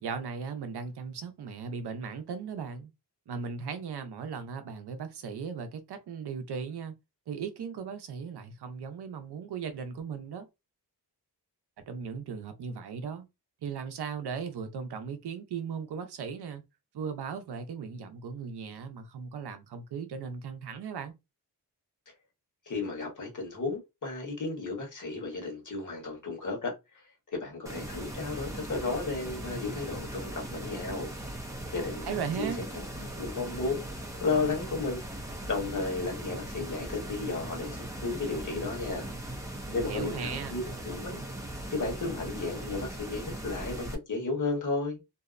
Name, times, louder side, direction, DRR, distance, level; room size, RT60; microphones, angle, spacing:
voice 1, 0.0-2.9 3.3-6.9 7.3-10.5 11.9-13.3 13.6-16.6 16.9-21.1 32.1-32.6 39.7-40.6, right 6 dB, 75° right, 0.6 m, -37 dB
voice 2, 22.7-27.1 27.3-31.1 31.7-33.8 34.2-35.0 35.4-39.1 39.7-41.2 41.7-45.0, left 3 dB, 50° left, 1.2 m, -33 dB
sound 1, 27.7-44.0, right 1 dB, 10° right, 0.4 m, -39 dB
2.7 x 2.0 x 2.4 m
wide cardioid pair, 140°, 40 cm